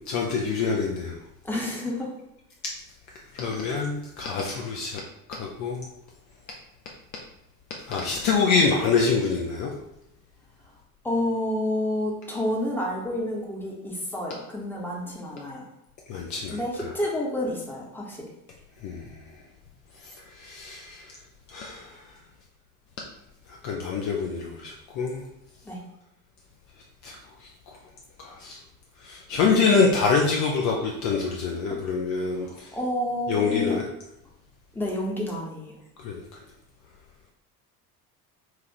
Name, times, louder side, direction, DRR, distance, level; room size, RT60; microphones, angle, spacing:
voice 1, 0.1-1.2 3.3-5.0 5.3-5.8 7.8-9.7 16.1-16.6 18.8-19.2 20.0-21.1 21.5-22.0 23.6-25.2 27.0-27.2 27.4-27.5 28.2-28.6 29.0-32.7 33.3-33.8 36.0-36.4, left 5 dB, 40° left, -1 dB, 0.5 m, -26 dB
voice 2, 1.4-2.1 11.0-15.7 16.5-18.2 25.6-25.8 31.7-31.8 32.2-33.8 34.7-35.8, left 1 dB, 5° left, -3 dB, 0.9 m, -29 dB
4.5 x 2.4 x 2.9 m, 0.85 s
figure-of-eight pair, 60°, 46 cm